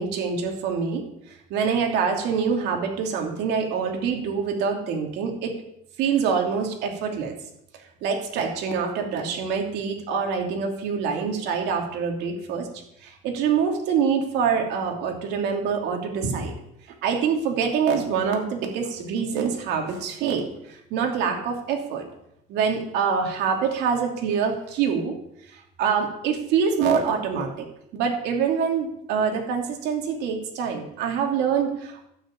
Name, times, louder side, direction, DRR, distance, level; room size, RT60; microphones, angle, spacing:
voice 1, 0.0-5.5 6.0-7.3 8.0-12.7 13.0-16.5 17.0-22.0 22.5-25.2 25.5-27.7 27.9-32.1, right 6 dB, 90° right, 2 dB, 2.8 m, -25 dB
12.5 x 6.4 x 8.7 m, 0.77 s
cardioid pair, 110°, 17 cm